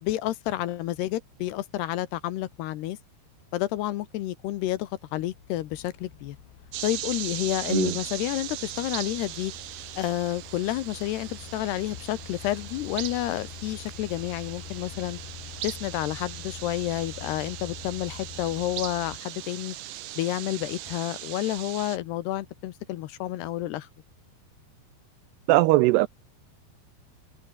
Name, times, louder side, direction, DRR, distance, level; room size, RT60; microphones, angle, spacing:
voice 1, 0.0-3.0 3.5-6.4 6.8-9.5 10.0-15.2 15.6-19.8 20.2-23.9, left 14 dB, 75° left, 2.9 m, -30 dB
sound 1, 3.4-3.5 4.1-19.2, left 11 dB, 60° left, 3.2 m, -46 dB
sound 2, 6.7-22.0, right 14 dB, 70° right, 2.2 m, -39 dB
voice 2, 25.5-26.1, right 19 dB, 85° right, 2.4 m, -20 dB
omnidirectional pair, 5.2 m